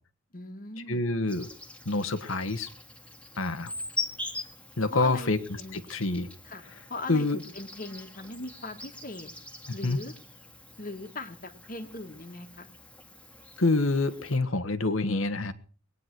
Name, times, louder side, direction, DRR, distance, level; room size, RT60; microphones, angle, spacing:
voice 1, 0.3-1.0 4.9-5.3 5.6-5.8 6.4-6.6 6.9-9.3 9.7-10.1 10.8-12.7, left 2 dB, 40° left, 7 dB, 1.7 m, -40 dB
voice 2, 0.9-1.5 1.8-2.7 3.4-3.7 4.8-6.3 7.1-7.4 9.7-10.0 13.6-15.5, left 2 dB, 80° left, 10 dB, 1.5 m, -27 dB
Insect, 1.3-14.4, left 2 dB, 5° left, 1.9 m, -42 dB
20.5 x 9.8 x 6.1 m, 0.42 s
head